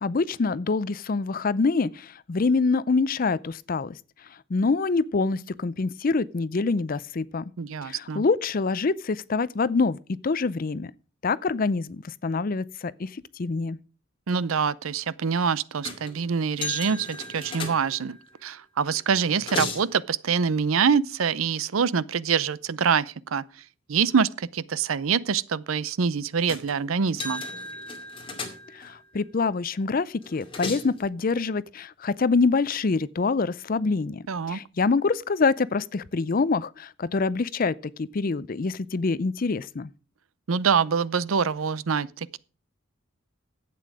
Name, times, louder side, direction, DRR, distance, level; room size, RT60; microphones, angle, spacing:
voice 1, 0.0-4.0 4.5-7.4 7.9-10.0 10.2-10.9 11.2-13.1 13.4-13.8 28.7-39.9, left 4 dB, 45° left, 0.5 m, -25 dB
voice 2, 7.6-8.2 14.3-23.4 23.9-27.4 34.3-34.6 40.5-42.4, right 6 dB, 85° right, 0.6 m, -25 dB
sound 1, 15.8-16.2 16.6-18.2 19.0-19.9 26.5-26.7 27.1-28.9 30.2-31.0, left 3 dB, 25° left, 2.2 m, -35 dB
11.5 x 8.6 x 4.8 m
head